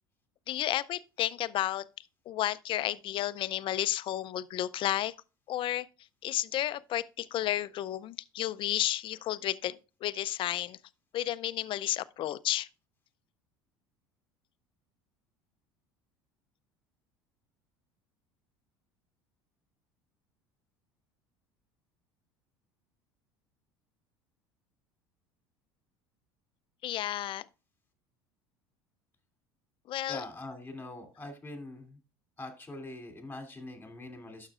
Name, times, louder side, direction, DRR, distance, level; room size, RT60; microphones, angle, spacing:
voice 1, 0.5-1.8 2.3-5.1 5.5-5.9 6.2-10.8 11.1-12.7 26.8-27.4 29.9-30.2, left 13 dB, 45° left, 0.4 m, -32 dB
voice 2, 30.1-32.0 32.4-34.5, left 2 dB, 15° left, 2.7 m, -43 dB
12.0 x 6.4 x 2.4 m
hypercardioid pair, 70°, 12 cm